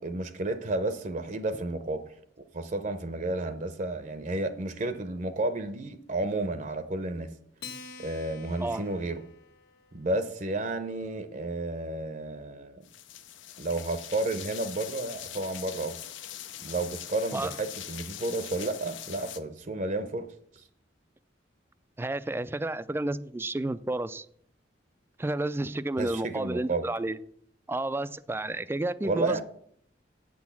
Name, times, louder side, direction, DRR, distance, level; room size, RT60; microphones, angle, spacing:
voice 1, 0.0-2.0 2.5-7.3 8.0-9.2 9.9-12.8 13.6-16.0 16.6-20.3 20.5-20.7 26.0-26.9 29.0-29.4, right 2 dB, 40° right, 0.6 m, -32 dB
Acoustic guitar, 7.6-10.2, left 4 dB, 60° left, 1.5 m, -47 dB
sound 1, 12.8-19.4, left 11 dB, 80° left, 0.7 m, -42 dB
voice 2, 22.0-24.3 25.2-27.2 27.7-29.4, right 2 dB, 10° right, 0.3 m, -31 dB
8.4 x 6.2 x 7.1 m
head